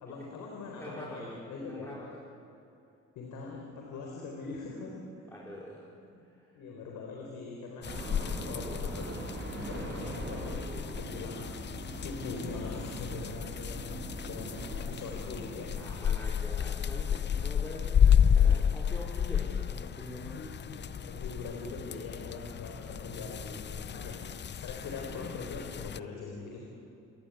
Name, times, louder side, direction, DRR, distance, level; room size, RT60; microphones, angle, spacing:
voice 1, 0.0-1.9 3.2-5.3 6.1-6.3 6.5-8.0 8.4-9.3 9.6-10.7 11.0-15.7 20.3-24.2 24.5-26.6, left 3 dB, 85° left, -1 dB, 4.1 m, -42 dB
voice 2, 0.8-2.1 5.3-5.8 6.4-6.5 15.8-20.4 24.6-24.7, left 1 dB, 10° left, -6 dB, 4.7 m, -44 dB
sound 1, 7.8-26.0, left 8 dB, 35° left, 0.6 m, -31 dB
sound 2, 7.8-16.0, right 2 dB, 40° right, 5.5 m, -42 dB
29.0 x 12.5 x 9.6 m, 2.8 s
cardioid pair, 90°, 30 cm